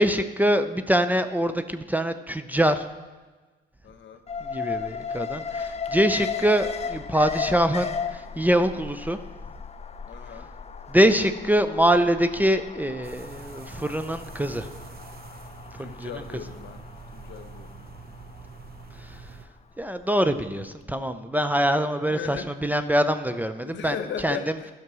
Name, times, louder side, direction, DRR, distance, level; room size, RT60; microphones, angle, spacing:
voice 1, 0.0-2.9 4.4-9.2 10.9-14.7 15.8-16.1 19.0-19.2 19.8-24.0 24.2-24.4, equal, 10° right, 10 dB, 0.6 m, -24 dB
voice 2, 3.8-4.2 10.1-10.5 15.8-16.8 17.1-18.0 21.9-22.5 23.6-24.7, left 8 dB, 65° left, 7 dB, 1.1 m, -37 dB
Alarm, 4.3-20.4 20.7-20.8, left 6 dB, 35° left, 0.6 m, -36 dB
sound 1, 13.0-19.5, right 5 dB, 50° right, 0.9 m, -45 dB
12.5 x 5.9 x 6.2 m, 1.3 s
cardioid pair, 90°, 20 cm